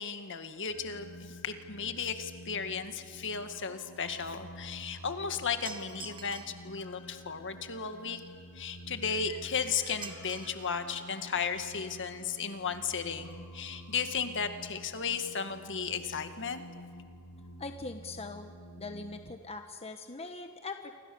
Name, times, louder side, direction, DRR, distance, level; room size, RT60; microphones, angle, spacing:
voice 1, 0.0-8.2 8.5-16.6, left 6 dB, 55° left, 8 dB, 1.9 m, -35 dB
sound 1, 0.7-19.3, equal, 80° left, 4.0 m, -49 dB
sound 2, 5.6-6.6 10.0-10.8 11.1-11.2 12.1-12.2 12.5-12.6 12.9-13.0 13.3-13.4, right 5 dB, 25° right, 1.7 m, -47 dB
voice 2, 17.6-18.5 18.8-21.0, left 3 dB, 30° left, 6 dB, 1.3 m, -41 dB
28.5 x 24.5 x 7.1 m, 2.2 s
head